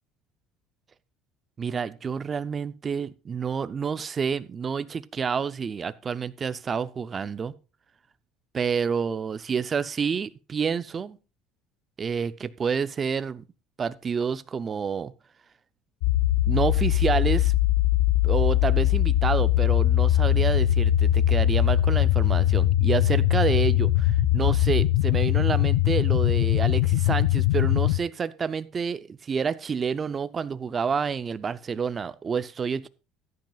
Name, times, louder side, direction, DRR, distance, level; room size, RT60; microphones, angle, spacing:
voice 1, 1.6-7.5 8.5-11.2 12.0-13.4 13.8-15.1 16.5-17.5 18.2-32.9, right 6 dB, 25° right, 15 dB, 0.5 m, -28 dB
sound 1, 16.0-28.0, left 13 dB, 85° left, 0.5 m, -21 dB
15.0 x 10.5 x 2.4 m, 0.30 s
cardioid pair, 135°, 0 cm